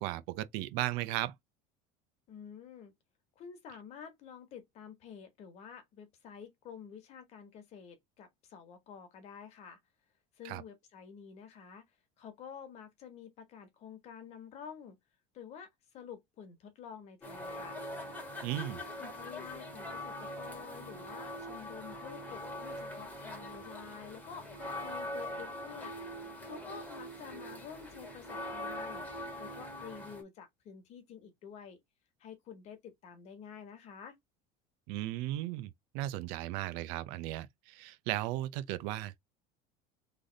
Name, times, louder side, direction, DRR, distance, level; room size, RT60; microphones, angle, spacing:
voice 1, 0.0-1.3 10.4-10.6 18.4-18.8 34.9-39.2, right 15 dB, 65° right, 0.6 m, -36 dB
voice 2, 2.3-2.9 3.3-9.8 10.4-11.8 12.2-15.0 15.3-15.7 15.9-17.8 18.6-25.9 26.4-29.0 29.4-31.8 32.2-34.2, left 7 dB, 40° left, 1.5 m, -49 dB
sound 1, 17.2-30.2, left 1 dB, 10° left, 1.4 m, -42 dB
3.9 x 3.4 x 3.9 m
cardioid pair, 180°, 17 cm